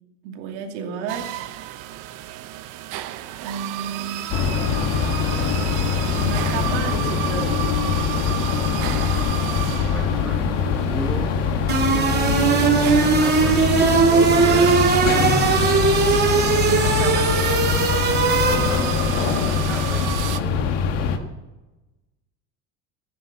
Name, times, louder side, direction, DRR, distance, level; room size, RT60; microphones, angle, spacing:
voice 1, 0.2-1.3 3.4-4.3 6.2-7.6 16.4-17.4, right 6 dB, 75° right, 3 dB, 2.6 m, -31 dB
sound 1, 1.1-20.4, right 14 dB, 60° right, 1.1 m, -32 dB
sound 2, 4.3-21.2, left 6 dB, 90° left, 1.9 m, -23 dB
voice 2, 9.9-11.3 11.9-13.7 14.0-14.8 18.1-20.8, equal, ahead, -3 dB, 2.2 m, -35 dB
sound 3, 11.7-19.1, right 5 dB, 30° right, 2.3 m, -19 dB
15.0 x 9.5 x 7.4 m, 1.1 s
supercardioid pair, 135°, 36 cm